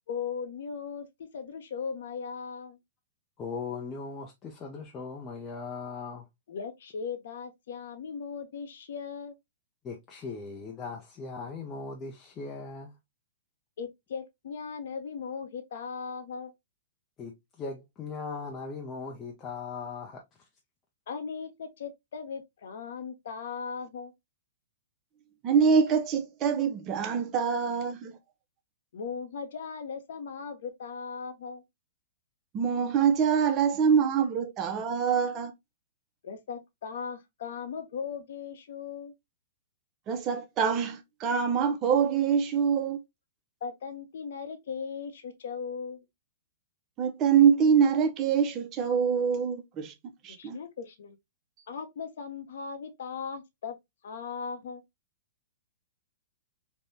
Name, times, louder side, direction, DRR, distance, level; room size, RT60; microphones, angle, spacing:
voice 1, 0.1-2.8 6.5-9.4 13.8-16.5 21.1-24.1 28.9-31.6 36.2-39.1 43.6-46.1 50.3-51.2 51.7-53.8 54.0-54.8, left 6 dB, 70° left, 0.7 m, -38 dB
voice 2, 3.4-6.3 9.8-13.0 17.2-20.2, left 4 dB, 25° left, 0.5 m, -39 dB
voice 3, 25.4-28.2 32.5-35.5 40.1-43.0 47.0-49.9 50.2-50.6, right 7 dB, 30° right, 0.6 m, -25 dB
3.4 x 2.2 x 2.6 m
hypercardioid pair, 140°, 0 cm